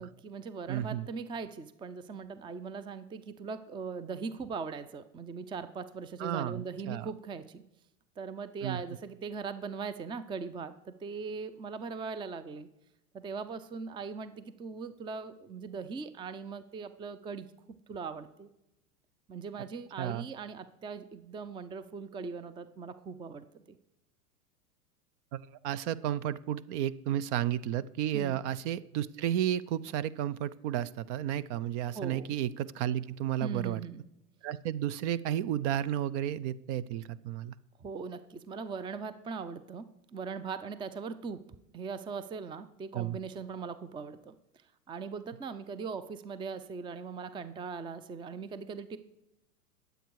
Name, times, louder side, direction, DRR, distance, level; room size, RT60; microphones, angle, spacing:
voice 1, 0.0-7.6 8.2-12.7 13.1-17.5 17.9-18.5 19.3-23.8 28.1-28.4 31.9-32.3 33.4-34.0 37.8-41.4 41.7-44.3 44.9-49.0, right 5 dB, 10° right, 13 dB, 0.5 m, -40 dB
voice 2, 0.7-1.1 6.2-7.1 8.6-8.8 20.0-20.3 25.3-33.8 34.4-37.5 42.9-43.2, right 11 dB, 50° right, 18 dB, 0.7 m, -32 dB
21.5 x 8.0 x 4.7 m, 0.88 s
hypercardioid pair, 105°, 45 cm